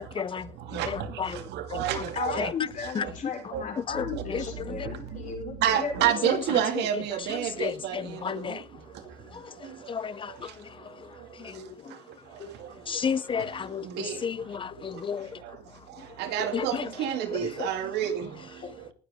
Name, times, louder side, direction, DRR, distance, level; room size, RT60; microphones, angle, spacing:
voice 1, 0.0-1.4 1.7-2.0 2.4-2.5 3.0-3.3 3.8-4.5 4.8-4.9 6.3-6.4 7.6-8.6 9.3-9.5 9.9-10.9 11.4-11.5 12.9-15.4 16.5-16.9 17.6-17.7, left 6 dB, 30° left, 0.6 m, -33 dB
voice 2, 0.7-1.1 1.5-2.5 3.0-3.1 3.5-3.6 5.6-8.6 13.8-14.2 16.2-18.4, right 10 dB, 85° right, 2.2 m, -28 dB
voice 3, 2.1-6.3 11.5-12.0 12.4-12.5 12.9-13.0 13.6-14.2 14.9-15.0 16.0-16.1, left 6 dB, 50° left, 4.6 m, -36 dB
19.5 x 7.8 x 3.6 m
cardioid pair, 110°, 17 cm